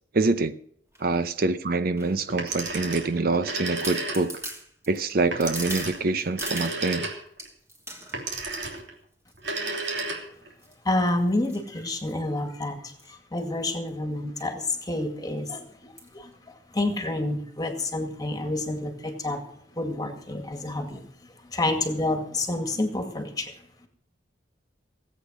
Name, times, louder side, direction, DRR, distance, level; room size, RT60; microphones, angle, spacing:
voice 1, 0.1-0.5 1.0-4.3 4.9-7.1, right 3 dB, 55° right, 11 dB, 0.7 m, -25 dB
sound 1, 0.9-1.2 2.0-3.0 3.5-3.6 3.8-7.0 7.4-8.8 9.3-9.6 9.8-10.2 10.6-12.4 12.9-13.1 13.4-13.5 13.7-13.9 14.4-14.5 14.9-15.0 16.0-16.2 16.8-16.9, right 1 dB, 15° right, 2.8 m, -41 dB
Telephone, 2.3-4.5 5.3-7.5 8.1-8.9 9.3-10.5, right 3 dB, 70° right, 3.2 m, -32 dB
voice 2, 10.8-15.7 16.1-19.4 19.8-21.1 21.4-23.5, left 2 dB, 20° left, 6 dB, 2.1 m, -29 dB
18.0 x 8.4 x 6.3 m, 0.66 s
head